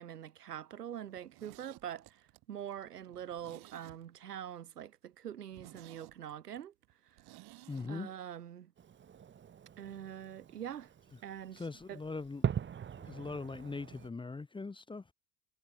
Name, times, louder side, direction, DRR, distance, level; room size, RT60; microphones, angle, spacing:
voice 1, 0.0-6.7 7.9-8.7 9.8-10.9 11.2-11.6 11.9-12.0, right 10 dB, 90° right, 1.2 m, -44 dB
Zipper (clothing), 1.1-4.4 4.7-4.8 5.1-5.2 5.5-7.9 8.2-8.3, right 17 dB, 55° right, 6.6 m, -56 dB
voice 2, 7.7-8.1 11.5-12.4 13.0-15.1, left 3 dB, 10° left, 0.8 m, -41 dB
Fireworks, 8.8-14.1, right 8 dB, 25° right, 1.1 m, -41 dB
hypercardioid pair, 75°, 46 cm